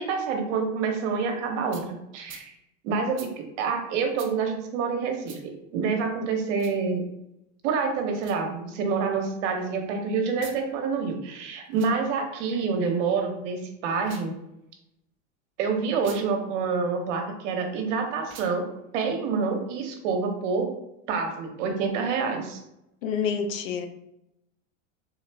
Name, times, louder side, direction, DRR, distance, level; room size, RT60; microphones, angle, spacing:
voice 1, 0.0-2.5 2.8-5.4 5.7-7.1 7.6-14.3 15.6-20.7 21.1-22.6, right 5 dB, 65° right, 4 dB, 0.9 m, -27 dB
sound 1, 1.7-1.9 2.3-2.5 3.1-3.3 4.2-4.3 5.2-5.4 6.5-6.8 8.2-8.4 10.3-10.6 11.7-12.0 13.9-14.3 16.0-16.2 18.2-18.6, right 6 dB, 35° right, 0.6 m, -45 dB
voice 2, 23.0-23.9, left 6 dB, 90° left, 7 dB, 0.6 m, -27 dB
3.5 x 2.4 x 3.3 m, 0.84 s
supercardioid pair, 120°, 38 cm